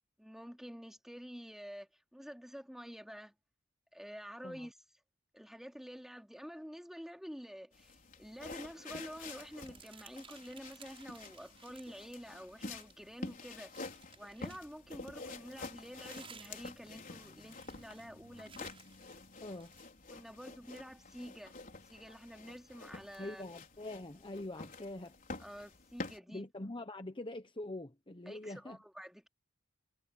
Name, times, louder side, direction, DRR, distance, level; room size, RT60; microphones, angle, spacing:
voice 1, 0.2-3.3 3.9-4.8 5.3-13.7 14.1-18.7 20.1-21.6 21.9-23.5 25.4-26.4 28.3-29.3, equal, ahead, 2.8 m, -49 dB
sound 1, 7.7-26.2, left 3 dB, 45° left, 4.5 m, -49 dB
sound 2, 9.2-12.1 12.4-14.8 15.5-19.9, right 6 dB, 30° right, 7.0 m, -58 dB
voice 2, 19.4-19.7 23.2-25.2 26.3-28.8, left 2 dB, 25° left, 1.0 m, -44 dB
head